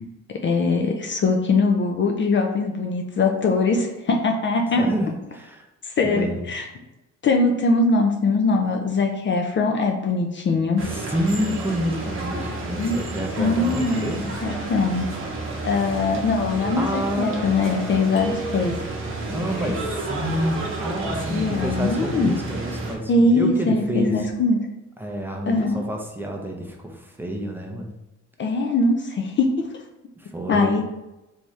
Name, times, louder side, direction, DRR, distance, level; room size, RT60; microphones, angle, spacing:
voice 1, 0.4-4.8 5.8-6.7 7.2-10.8 12.8-13.0 13.4-14.1 14.4-15.1 15.6-18.7 21.3-22.4 23.1-24.6 25.5-25.8 28.4-29.7 30.5-30.9, left 3 dB, 40° left, 3 dB, 0.4 m, -21 dB
voice 2, 4.7-5.7 6.0-6.5 10.9-14.4 16.8-18.1 19.3-24.3 25.0-27.9 30.2-30.8, equal, 5° right, 0 dB, 0.6 m, -28 dB
sound 1, 10.8-22.9, right 2 dB, 45° right, 0.9 m, -31 dB
sound 2, 18.2-19.3, right 4 dB, 20° left, 1.0 m, -34 dB
3.4 x 2.7 x 3.2 m, 0.98 s
cardioid pair, 90°, 30 cm